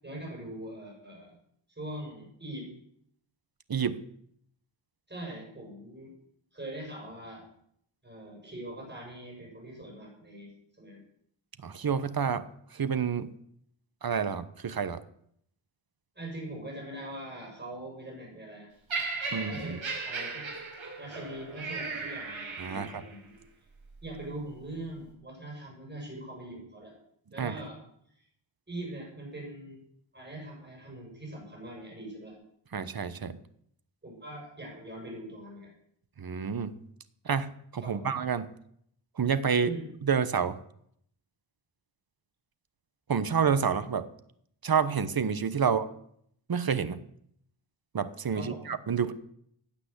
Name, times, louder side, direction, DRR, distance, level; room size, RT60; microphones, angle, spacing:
voice 1, 0.0-1.4 1.7-2.7 5.1-6.1 6.5-7.4 8.0-10.5 10.8-11.0 16.1-18.7 19.3-20.5 21.0-23.4 24.0-26.9 27.3-27.8 28.1-28.2 28.7-29.8 30.1-32.4 34.0-35.7 37.8-38.1 39.6-39.9 48.3-48.7, right 1 dB, 20° right, -2 dB, 6.9 m, -42 dB
voice 2, 11.6-12.4 12.7-13.3 14.0-15.0 19.3-19.8 22.6-22.9 27.4-27.6 32.7-33.3 36.2-36.7 37.2-38.5 39.2-39.7 40.0-40.6 43.1-44.1 44.6-45.9 46.5-47.0 47.9-49.1, right 6 dB, 45° right, 13 dB, 1.1 m, -28 dB
Laughter, 18.9-23.1 23.9-24.1, right 4 dB, 75° right, 5.5 m, -36 dB
16.0 x 9.0 x 8.3 m, 0.68 s
wide cardioid pair, 140°, 48 cm